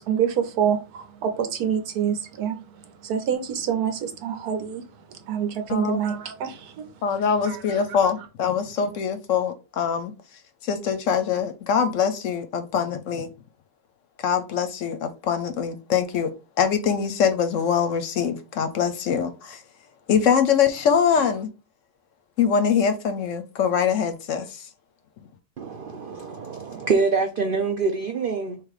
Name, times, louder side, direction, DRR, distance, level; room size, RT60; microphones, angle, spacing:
voice 1, 0.0-2.6 3.0-4.8 5.1-6.9 7.5-7.6, right 8 dB, 85° right, 1.4 m, -26 dB
voice 2, 5.7-6.1 7.0-10.1 10.6-13.3 14.2-16.3 16.6-19.6 20.1-21.5 22.4-24.7, left 7 dB, 65° left, 0.9 m, -23 dB
voice 3, 25.6-28.6, right 4 dB, 70° right, 0.5 m, -25 dB
3.8 x 2.9 x 4.8 m
omnidirectional pair, 1.6 m